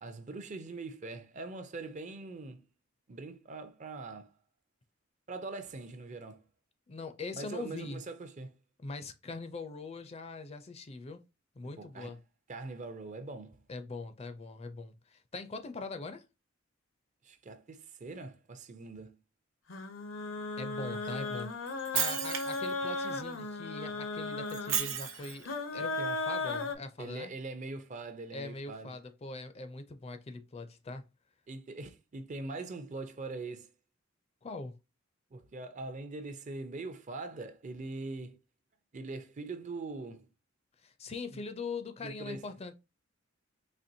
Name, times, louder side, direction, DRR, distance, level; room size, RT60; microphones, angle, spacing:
voice 1, 0.0-2.6 3.1-4.3 5.3-6.4 7.3-8.6 11.8-12.1 12.5-13.6 17.2-19.1 20.9-21.4 27.0-29.0 31.5-33.7 35.3-38.4 38.9-40.3 41.3-41.4 42.0-42.5, right 3 dB, 35° right, 0.5 m, -42 dB
voice 2, 6.9-8.0 8.8-11.2 11.6-12.2 13.7-16.2 20.6-27.3 28.3-31.0 34.4-34.8 40.8-42.7, left 3 dB, 30° left, 0.4 m, -42 dB
sound 1, 19.7-26.7, left 3 dB, 80° left, 0.7 m, -36 dB
Shatter, 21.7-22.7 24.5-25.4, right 9 dB, 90° right, 0.9 m, -33 dB
4.3 x 2.9 x 2.6 m
head